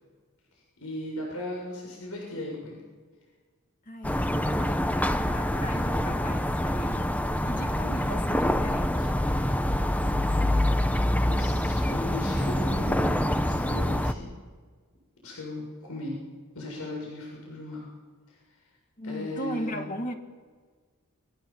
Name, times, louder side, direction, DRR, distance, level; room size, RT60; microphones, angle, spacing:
voice 1, 0.8-2.8 11.2-14.3 15.2-16.2 16.5-17.9 19.0-19.8, left 1 dB, 75° left, -2 dB, 7.3 m, -37 dB
voice 2, 3.9-7.1 7.5-9.1 19.0-20.1, equal, 35° left, 4 dB, 2.4 m, -37 dB
sound 1, 4.0-14.1, left 1 dB, 5° left, 1.0 m, -26 dB
29.5 x 22.0 x 7.5 m, 1.5 s
head